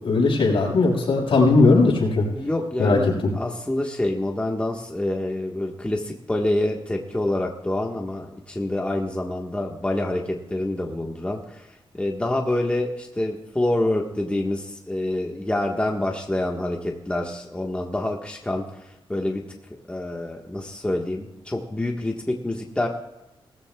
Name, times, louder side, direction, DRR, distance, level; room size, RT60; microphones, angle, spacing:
voice 1, 0.0-2.3 2.8-3.0, left 3 dB, 70° left, -3 dB, 6.1 m, -18 dB
voice 2, 2.3-11.7 11.9-19.4 19.9-22.9, left 1 dB, 10° left, 0 dB, 1.5 m, -27 dB
20.0 x 14.5 x 2.4 m, 0.93 s
cardioid pair, 95°, 10 cm